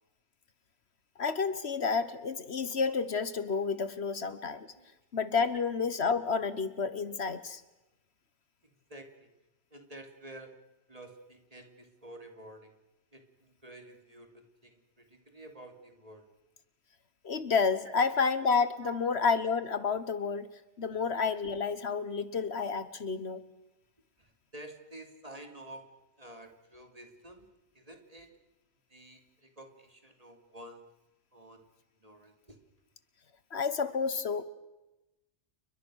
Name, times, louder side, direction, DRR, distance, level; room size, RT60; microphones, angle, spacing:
voice 1, 1.2-4.7 5.1-7.6 17.2-20.5 20.8-23.4 33.5-34.4, left 5 dB, 65° left, 13 dB, 1.5 m, -30 dB
voice 2, 8.9-9.3 9.7-10.6 10.9-12.7 13.1-16.3 17.8-18.0 18.8-19.0 24.2-25.9 26.2-27.5 27.7-28.3 28.9-30.9 31.3-31.6 32.0-32.6, right 1 dB, 30° right, 5 dB, 3.0 m, -50 dB
30.0 x 23.0 x 6.4 m, 0.98 s
omnidirectional pair, 1.2 m